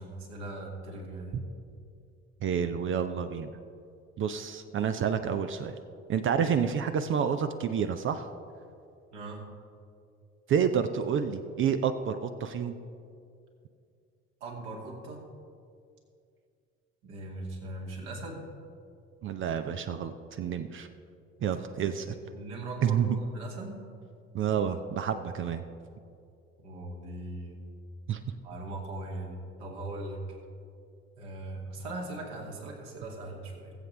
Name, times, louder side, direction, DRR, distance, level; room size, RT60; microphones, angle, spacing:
voice 1, 0.0-1.4 9.1-9.4 14.4-15.2 17.0-18.5 21.4-22.0 22.3-23.8 26.6-27.6 28.4-30.2 31.2-33.7, right 2 dB, 60° right, -1 dB, 2.3 m, -40 dB
voice 2, 2.4-3.5 4.2-5.7 6.1-8.3 10.5-12.7 19.2-20.9 21.4-22.1 22.8-23.2 24.3-25.6 28.1-28.2, right 7 dB, 30° right, 9 dB, 0.6 m, -29 dB
20.0 x 7.9 x 3.2 m, 2.4 s
figure-of-eight pair, 60°, 39 cm